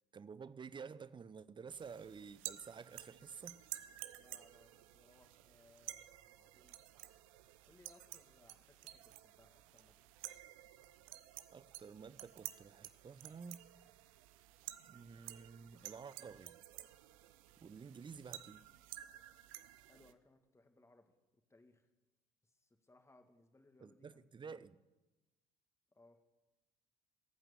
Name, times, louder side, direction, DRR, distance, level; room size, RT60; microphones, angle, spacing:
voice 1, 0.1-3.6 11.5-13.6 14.9-16.6 17.6-18.6 23.8-24.8, right 5 dB, 25° right, 0.7 m, -51 dB
sound 1, 1.7-20.1, right 15 dB, 70° right, 0.7 m, -53 dB
voice 2, 4.1-6.9 7.7-10.0 19.9-21.9 22.4-24.7 25.9-26.2, left 2 dB, 15° left, 2.2 m, -67 dB
21.0 x 9.0 x 6.9 m
figure-of-eight pair, 55°, 18 cm